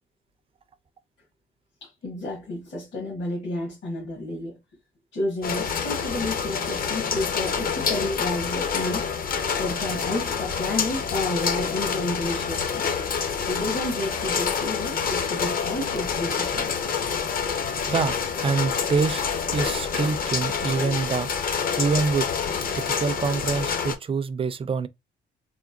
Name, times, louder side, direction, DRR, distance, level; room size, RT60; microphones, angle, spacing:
voice 1, 1.8-4.6 5.1-12.9 13.5-16.9, left 2 dB, 70° left, 1.6 m, -31 dB
sound 1, 5.4-23.9, left 6 dB, 45° left, 0.6 m, -27 dB
voice 2, 18.4-19.2 19.5-21.3 21.8-22.3 22.7-24.9, right 5 dB, 30° right, 0.4 m, -25 dB
3.6 x 2.2 x 2.5 m
cardioid pair, 90°, 20 cm